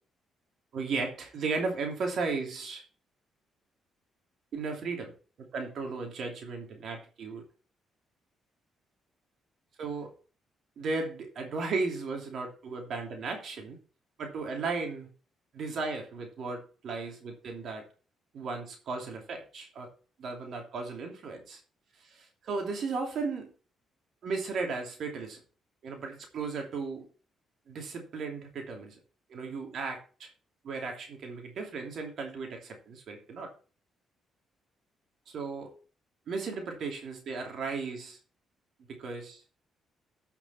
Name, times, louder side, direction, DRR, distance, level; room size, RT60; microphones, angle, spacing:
voice 1, 0.7-2.8 4.5-5.1 5.4-7.4 9.8-10.1 10.8-13.8 14.2-15.1 15.5-17.8 18.3-19.9 20.2-21.6 22.0-23.5 24.2-25.4 25.8-27.1 27.7-29.0 29.3-30.3 30.6-33.5 35.3-35.7 36.3-38.2 38.9-39.4, right 4 dB, 65° right, 2 dB, 2.8 m, -35 dB
13.0 x 5.9 x 4.2 m, 0.37 s
cardioid pair, 90°, 0 cm